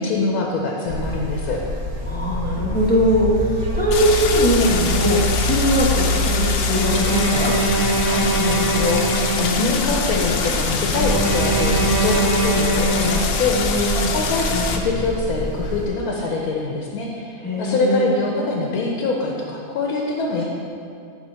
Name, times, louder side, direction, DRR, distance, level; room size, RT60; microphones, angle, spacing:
voice 1, 0.0-1.6 8.0-20.4, left 3 dB, 90° left, -1 dB, 1.2 m, -24 dB
Buzz, 0.8-15.9, left 1 dB, 55° right, 2.1 m, -26 dB
voice 2, 2.0-7.5 9.6-9.7 13.5-14.2 17.4-18.0, equal, 10° left, -5 dB, 0.9 m, -21 dB
Stream, 3.9-14.8, left 5 dB, 70° left, 1.0 m, -25 dB
Bowed string instrument, 6.7-9.9 10.9-13.9, right 2 dB, 80° right, 1.4 m, -23 dB
9.2 x 3.3 x 5.7 m, 2.5 s
omnidirectional pair, 1.5 m